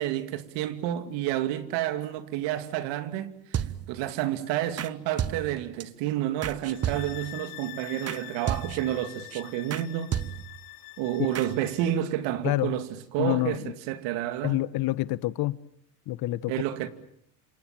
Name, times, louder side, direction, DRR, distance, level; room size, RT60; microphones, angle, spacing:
voice 1, 0.0-10.1 11.0-14.6 16.5-16.9, right 12 dB, 65° right, 2.8 m, -30 dB
sound 1, 3.5-4.1 4.8-4.9 5.2-5.8 6.4-7.4 8.1-8.2 8.5-9.0 9.3-9.4 9.7-9.8 10.1-10.6 11.3-11.5, right 9 dB, 35° right, 1.2 m, -32 dB
sound 2, 6.6-12.0, left 19 dB, 80° left, 2.2 m, -45 dB
voice 2, 12.4-12.8 13.2-13.7 14.4-15.6 16.1-16.5, left 17 dB, 50° left, 1.2 m, -27 dB
28.5 x 27.0 x 7.6 m
supercardioid pair, 95°, 46 cm